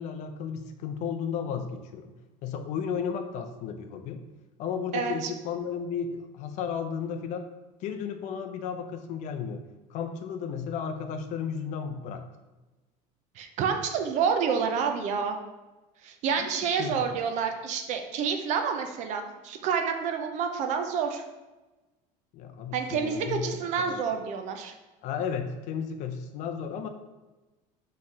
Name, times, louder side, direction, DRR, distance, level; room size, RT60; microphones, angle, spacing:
voice 1, 0.0-2.1 2.4-4.2 4.6-7.5 7.8-12.2 16.4-17.2 22.3-24.1 25.0-26.9, left 7 dB, 50° left, 6 dB, 0.5 m, -34 dB
voice 2, 4.9-5.3 13.4-15.4 16.0-21.2 22.7-24.7, right 6 dB, 50° right, 5 dB, 0.5 m, -28 dB
5.6 x 3.2 x 2.7 m, 1.1 s
cardioid pair, 155°, 16 cm